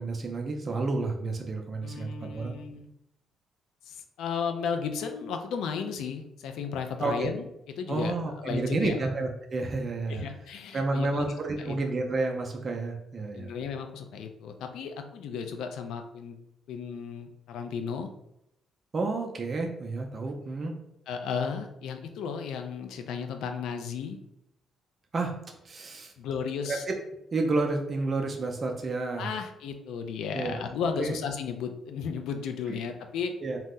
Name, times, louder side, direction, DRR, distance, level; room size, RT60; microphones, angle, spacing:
voice 1, 0.0-2.5 7.0-7.3 7.9-10.3 10.7-13.5 18.9-20.8 25.1-25.4 25.6-26.1 26.7-26.9 27.3-29.3 30.3-30.7 31.0-31.2 32.7-32.8 33.4-33.6, right 3 dB, 40° right, 1 dB, 0.4 m, -30 dB
voice 2, 1.8-2.9 3.9-7.4 7.8-9.0 10.1-11.3 11.6-11.8 13.3-16.4 16.7-18.1 21.1-24.2 26.2-26.8 29.2-33.3, left 6 dB, 85° left, 6 dB, 0.4 m, -34 dB
2.8 x 2.0 x 3.6 m, 0.82 s
cardioid pair, 90°, 0 cm